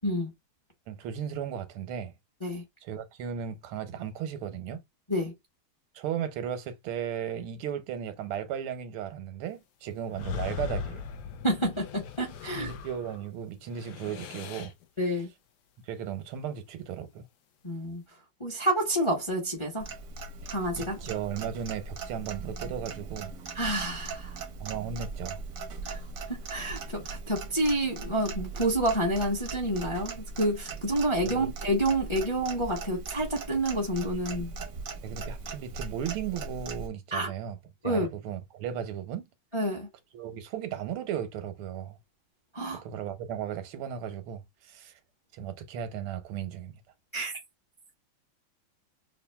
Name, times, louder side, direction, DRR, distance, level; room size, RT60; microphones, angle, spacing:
voice 1, 0.9-2.1 2.8-4.8 6.0-11.1 12.4-14.7 15.9-17.3 20.8-23.3 24.6-25.4 31.2-31.5 35.0-37.6 37.8-39.3 40.1-42.0 42.8-44.9 45.3-46.8, right 9 dB, 85° right, 1.6 m, -35 dB
sound 1, 10.1-13.3 13.6-14.8, left 6 dB, 70° left, 1.0 m, -39 dB
voice 2, 11.4-12.7 15.0-15.3 17.6-18.0 18.4-19.9 20.5-21.0 23.5-24.4 25.8-26.0 26.5-34.5 37.1-37.3 37.8-38.1 39.5-39.9 42.5-42.8 47.1-47.3, right 1 dB, 20° left, 0.8 m, -29 dB
Clock, 19.8-36.9, right 4 dB, 60° right, 0.9 m, -39 dB
5.7 x 2.5 x 2.2 m
omnidirectional pair, 2.3 m